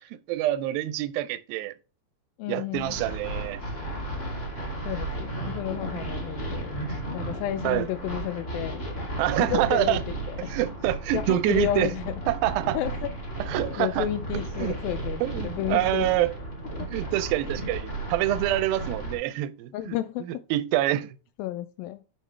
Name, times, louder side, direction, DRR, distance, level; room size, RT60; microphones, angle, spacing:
voice 1, 0.1-1.7 2.5-3.6 6.3-6.4 7.6-7.9 9.2-10.0 10.5-11.9 12.3-12.8 13.4-14.1 14.6-14.8 15.2-16.3 16.9-20.0 20.3-21.2, right 14 dB, 80° right, 2.2 m, -26 dB
voice 2, 2.4-3.0 4.8-6.7 7.1-8.8 9.4-10.0 10.3-10.5 11.1-12.2 12.7-13.1 13.8-16.1 19.7-20.4 21.4-22.0, left 13 dB, 90° left, 2.0 m, -31 dB
sound 1, 2.7-19.2, right 2 dB, 25° left, 2.1 m, -34 dB
8.4 x 5.6 x 3.2 m
omnidirectional pair, 4.6 m